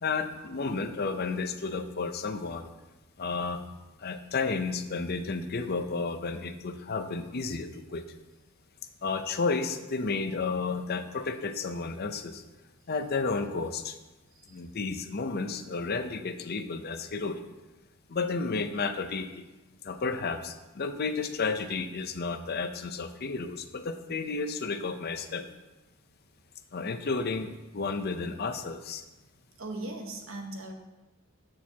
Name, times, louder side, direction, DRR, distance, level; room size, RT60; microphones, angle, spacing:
voice 1, 0.0-2.7 3.2-3.6 4.0-8.0 9.0-12.4 12.9-14.0 14.5-17.4 18.1-19.4 19.8-25.5 26.7-29.0, left 4 dB, 50° left, 9 dB, 0.6 m, -32 dB
voice 2, 29.6-30.7, right 2 dB, 70° right, 3 dB, 1.2 m, -39 dB
13.5 x 6.4 x 2.8 m, 1.1 s
head